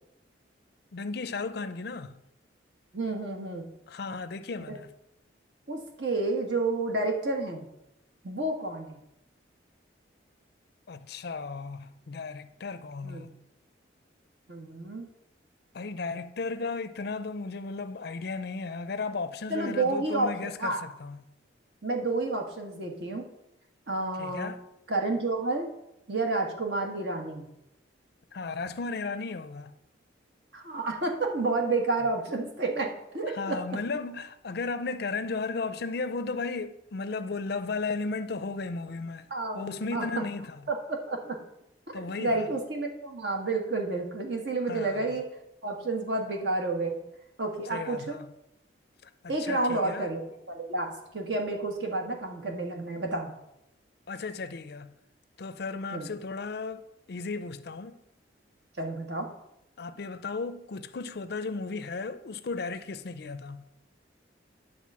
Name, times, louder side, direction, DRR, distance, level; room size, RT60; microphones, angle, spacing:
voice 1, 0.9-2.1 3.9-4.9 10.9-13.3 15.7-21.2 24.2-24.6 28.3-29.7 33.1-39.3 39.5-40.6 41.9-42.5 44.7-45.0 47.7-48.2 49.2-50.1 54.1-54.9 55.4-58.0 59.8-63.6, left 4 dB, 55° left, 0.5 m, -35 dB
voice 2, 2.9-3.7 4.7-4.8 5.7-7.7 8.2-9.0 13.0-13.3 14.5-15.1 19.5-20.8 21.8-23.3 23.9-24.5 24.9-25.7 26.1-27.5 30.5-33.6 39.3-40.3 40.7-41.4 41.9-45.3 45.6-47.0 47.4-48.2 49.3-50.2 50.5-53.3 55.9-56.1 58.8-59.3, right 2 dB, 65° right, 1.6 m, -30 dB
10.5 x 4.0 x 7.4 m
head